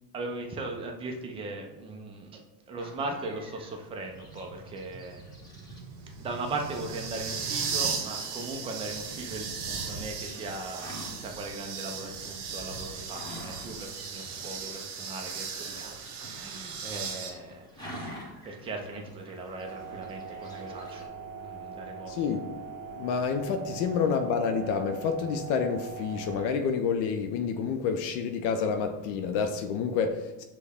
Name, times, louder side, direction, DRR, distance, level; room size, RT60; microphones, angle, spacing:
voice 1, 0.1-2.4 2.7-5.2 6.2-18.2 18.4-21.1 21.4-22.1, right 2 dB, 15° right, 2 dB, 0.3 m, -38 dB
sound 1, 2.8-21.1, equal, 10° left, 1.0 m, -49 dB
sound 2, 4.2-17.3, right 6 dB, 70° right, 1.0 m, -37 dB
sound 3, 19.6-26.5, right 5 dB, 40° right, 0.9 m, -42 dB
voice 2, 22.1-22.5 23.0-30.4, left 6 dB, 60° left, 6 dB, 0.5 m, -28 dB
6.3 x 2.2 x 3.5 m, 1.0 s
cardioid pair, 130°, 46 cm